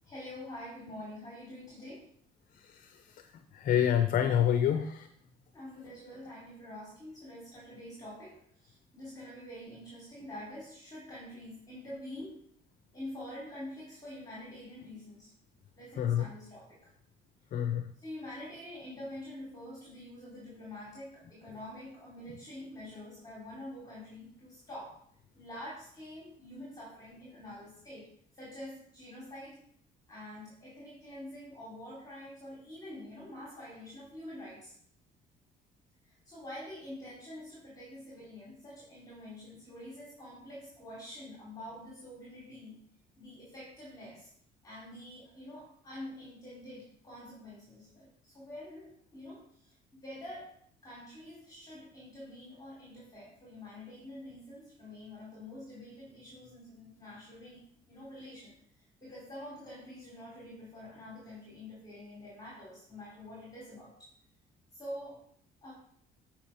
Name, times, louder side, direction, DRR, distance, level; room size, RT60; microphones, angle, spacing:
voice 1, 0.0-2.1 4.7-4.8 5.5-12.4 12.9-15.3 15.8-16.9 18.0-25.0 25.3-28.1 28.3-29.6 30.1-34.7 36.1-42.8 43.2-44.3 44.6-50.5 50.8-58.5 59.0-64.1 64.7-65.2 65.6-65.7, left 1 dB, 20° left, -6 dB, 3.4 m, -46 dB
voice 2, 2.5-3.2 3.5-5.1 16.0-16.3 17.5-17.9, left 9 dB, 55° left, 9 dB, 0.6 m, -28 dB
8.9 x 5.6 x 4.3 m, 0.64 s
cardioid pair, 110°, 17 cm